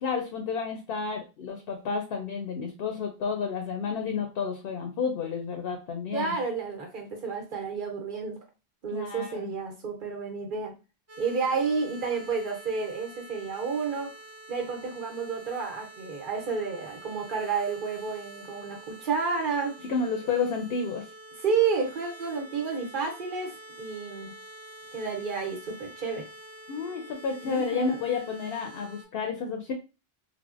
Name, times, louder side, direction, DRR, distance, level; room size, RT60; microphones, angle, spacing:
voice 1, 0.0-6.4 8.9-9.5 19.9-21.1 26.7-29.7, left 5 dB, 70° left, 4 dB, 0.7 m, -31 dB
voice 2, 6.1-8.4 8.8-10.8 11.2-14.1 14.5-19.8 21.4-24.3 24.9-26.3 27.4-28.1, right 5 dB, 55° right, 3 dB, 1.0 m, -31 dB
sound 1, 11.1-29.1, right 1 dB, 20° right, 0.5 m, -47 dB
3.3 x 2.0 x 2.4 m, 0.30 s
omnidirectional pair, 1.1 m